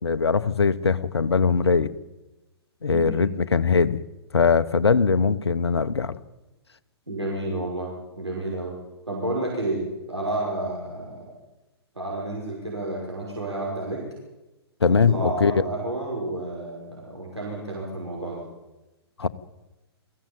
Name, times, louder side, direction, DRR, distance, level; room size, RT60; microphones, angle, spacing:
voice 1, 0.0-1.9 2.8-4.0 4.3-6.2 14.8-15.5 19.2-19.3, left 5 dB, 75° left, 14 dB, 1.1 m, -21 dB
voice 2, 2.9-3.3 7.1-8.8 9.1-11.2 12.0-14.0 14.8-18.4, right 2 dB, 90° right, -3 dB, 6.0 m, -30 dB
22.0 x 15.0 x 9.1 m, 1.0 s
figure-of-eight pair, 115°, 14 cm